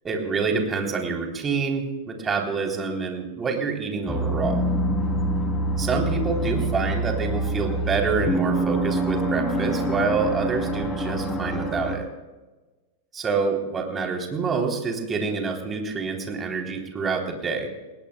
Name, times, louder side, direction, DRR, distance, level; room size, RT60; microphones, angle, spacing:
voice 1, 0.0-4.6 5.8-12.1 13.1-17.7, right 4 dB, 20° right, 2 dB, 3.5 m, -27 dB
sound 1, 4.1-12.0, right 1 dB, 15° left, 3.0 m, -26 dB
29.0 x 20.0 x 2.3 m, 1.2 s
figure-of-eight pair, 90°, 0 cm